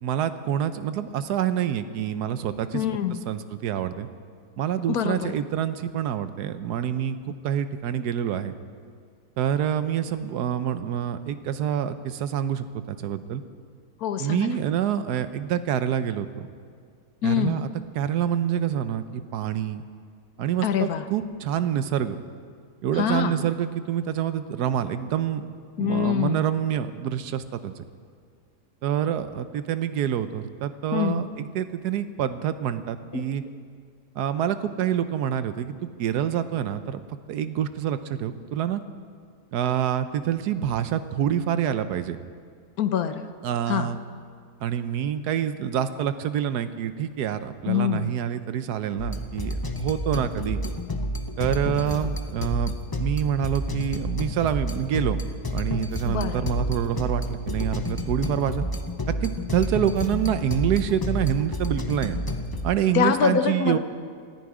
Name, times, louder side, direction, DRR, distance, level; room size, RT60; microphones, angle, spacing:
voice 1, 0.0-2.8 3.3-4.1 4.6-8.5 9.4-13.4 14.2-16.5 17.2-17.7 17.9-19.8 20.4-22.2 22.8-27.7 28.8-33.4 34.2-37.0 37.3-38.8 39.5-42.2 43.4-44.0 44.6-50.6 51.4-52.7 53.0-55.2 55.5-58.6 59.1-62.2 62.6-63.8, right 9 dB, 85° right, 12 dB, 1.3 m, -27 dB
voice 2, 2.7-3.2 4.9-5.3 14.0-14.6 17.2-17.6 20.6-21.0 22.9-23.3 25.8-26.5 30.9-31.2 33.1-33.2 42.8-43.3 43.7-43.9 47.7-48.1 56.0-56.5 62.9-63.8, left 8 dB, 70° left, 10 dB, 1.3 m, -25 dB
sound 1, 49.0-62.7, equal, 25° left, 0.5 m, -30 dB
19.5 x 13.5 x 4.9 m, 2.2 s
omnidirectional pair, 1.7 m